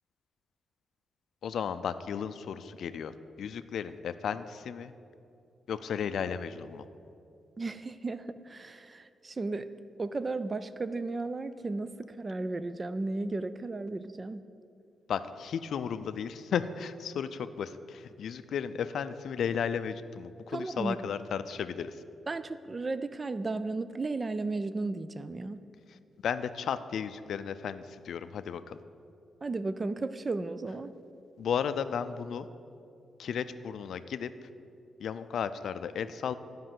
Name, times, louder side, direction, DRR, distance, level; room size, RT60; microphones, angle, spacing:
voice 1, 1.4-4.9 5.7-6.8 15.1-22.0 25.9-26.0 26.2-28.8 31.4-32.5 33.2-34.5 35.0-36.3, left 7 dB, 60° left, 12 dB, 0.4 m, -34 dB
voice 2, 7.6-9.7 10.0-14.4 20.5-21.1 22.3-25.6 29.4-30.9, right 3 dB, 20° right, 13 dB, 0.3 m, -34 dB
10.0 x 5.3 x 7.5 m, 2.5 s
wide cardioid pair, 165°, 0 cm